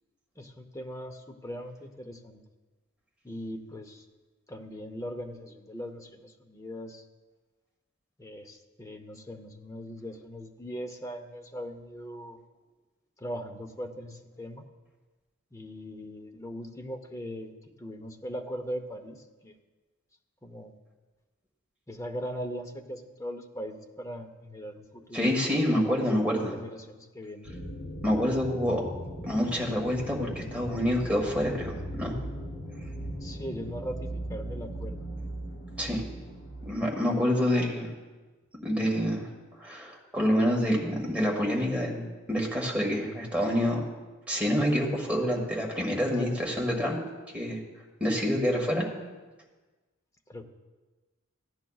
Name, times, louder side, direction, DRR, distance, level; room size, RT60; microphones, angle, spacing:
voice 1, 0.4-2.4 3.2-4.0 4.5-7.0 8.2-12.4 13.2-14.6 15.5-17.5 17.8-19.6 20.4-20.7 21.9-27.5 33.2-35.0 50.3-50.4, equal, 15° left, 4 dB, 0.7 m, -40 dB
voice 2, 25.1-26.5 28.0-28.8 29.2-32.1 35.8-36.0 36.6-37.9 38.6-39.3 39.6-43.8 44.3-47.0 47.3-47.6 48.0-48.9, equal, 5° right, -2 dB, 1.5 m, -27 dB
sound 1, 27.5-36.7, equal, 70° left, 3.0 m, -38 dB
15.0 x 10.0 x 2.4 m, 1.3 s
head